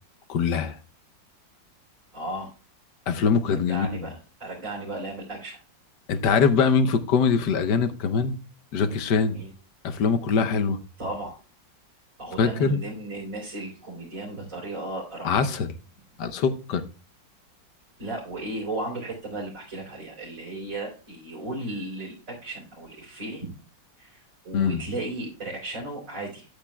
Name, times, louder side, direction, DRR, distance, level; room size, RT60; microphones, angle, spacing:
voice 1, 0.3-0.8 3.1-4.1 6.1-8.4 8.7-9.4 9.8-10.8 12.4-12.8 15.2-15.7 16.2-16.8 24.5-24.8, left 5 dB, 65° left, 1.5 m, -23 dB
voice 2, 2.1-2.5 3.7-5.6 9.3-9.5 11.0-11.4 12.2-15.4 18.0-23.5 24.0-26.5, right 2 dB, 40° right, 4.4 m, -35 dB
14.5 x 8.8 x 2.3 m
omnidirectional pair, 2.1 m